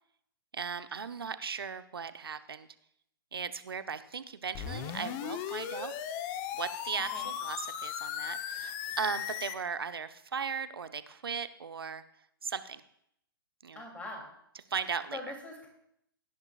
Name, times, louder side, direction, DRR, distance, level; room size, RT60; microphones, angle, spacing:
voice 1, 0.5-2.7 3.3-5.9 6.5-12.0 12.4-12.8 13.6-13.8 14.7-15.2, right 6 dB, 75° right, 12 dB, 0.8 m, -37 dB
sound 1, 4.5-9.6, left 9 dB, 35° left, 0.9 m, -37 dB
voice 2, 13.7-14.3 14.8-15.7, left 2 dB, 10° left, 1 dB, 2.9 m, -43 dB
16.5 x 10.5 x 2.5 m, 0.75 s
figure-of-eight pair, 120°, 12 cm